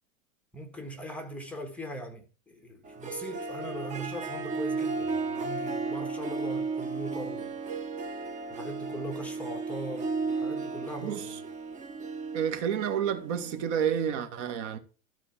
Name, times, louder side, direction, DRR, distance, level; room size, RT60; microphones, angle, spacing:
voice 1, 0.5-7.5 8.5-11.4, right 1 dB, 5° left, 1.4 m, -40 dB
Harp, 2.9-14.1, right 4 dB, 15° right, 0.7 m, -34 dB
voice 2, 12.3-14.8, right 8 dB, 55° right, 1.9 m, -30 dB
13.0 x 4.5 x 7.3 m
supercardioid pair, 140°, 42 cm